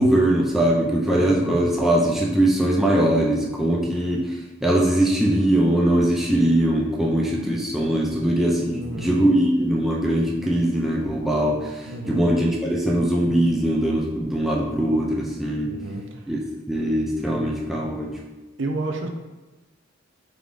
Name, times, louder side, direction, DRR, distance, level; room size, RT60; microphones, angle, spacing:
voice 1, 0.0-15.7 16.3-16.4 16.7-18.1, right 1 dB, ahead, -4 dB, 0.4 m, -21 dB
voice 2, 1.2-1.7 8.7-9.2 11.9-12.3 15.6-16.3 18.6-19.1, right 2 dB, 65° right, 4 dB, 0.5 m, -31 dB
4.6 x 3.6 x 2.5 m, 1.2 s
head